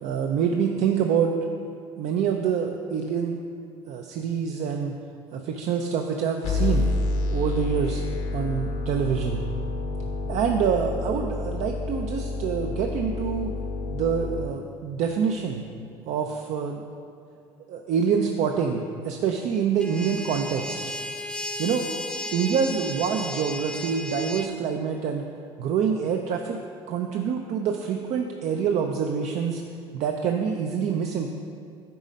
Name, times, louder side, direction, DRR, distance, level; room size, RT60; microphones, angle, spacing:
voice 1, 0.0-1.3 2.0-3.4 3.9-4.9 5.3-6.9 7.3-8.0 8.3-9.4 10.3-13.5 13.9-15.6 16.1-16.8 17.7-20.8 21.6-21.9 22.3-25.2 25.6-26.6 26.9-29.6 29.9-31.3, right 7 dB, 60° right, 3 dB, 0.5 m, -26 dB
sound 1, 6.4-14.4, left 2 dB, 70° left, 1.0 m, -29 dB
sound 2, 19.8-24.5, left 1 dB, 5° left, 0.5 m, -34 dB
9.2 x 4.0 x 5.3 m, 2.4 s
hypercardioid pair, 75°, 13 cm